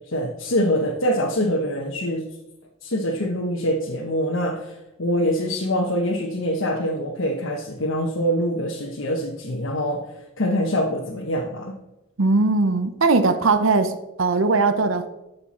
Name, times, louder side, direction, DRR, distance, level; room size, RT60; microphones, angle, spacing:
voice 1, 0.1-2.3 2.8-10.1 10.4-11.7, equal, 80° left, 1.2 m, -24 dB
voice 2, 12.2-15.1, right 3 dB, 80° right, 0.8 m, -20 dB
11.5 x 6.8 x 4.3 m
head